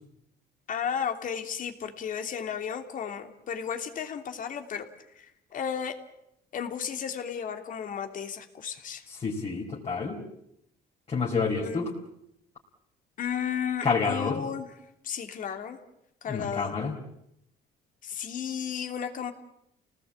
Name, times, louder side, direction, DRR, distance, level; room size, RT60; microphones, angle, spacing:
voice 1, 0.7-4.9 5.1-5.9 6.5-9.1 11.6-11.9 13.2-14.7 15.0-15.8 16.2-16.7 18.0-19.3, left 7 dB, 50° left, 6 dB, 3.0 m, -33 dB
voice 2, 9.1-10.2 11.1-11.9 13.8-14.4 16.3-17.0, left 4 dB, 35° left, -3 dB, 4.6 m, -28 dB
30.0 x 19.0 x 8.6 m, 0.78 s
cardioid pair, 110°, 17 cm